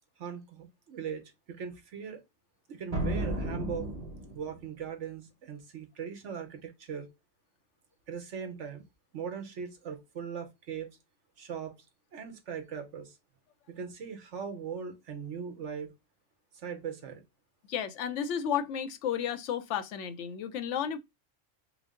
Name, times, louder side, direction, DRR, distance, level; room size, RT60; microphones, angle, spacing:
voice 1, 0.2-2.2 2.7-3.9 4.3-7.1 8.1-8.8 9.1-11.0 11.4-11.7 12.1-13.2 13.7-15.9 16.5-17.2, right 7 dB, 70° right, 1.3 m, -40 dB
sound 1, 2.9-4.7, right 1 dB, 30° right, 1.4 m, -33 dB
voice 2, 17.7-21.0, left 8 dB, 70° left, 0.9 m, -32 dB
4.9 x 2.0 x 3.6 m
omnidirectional pair, 1.3 m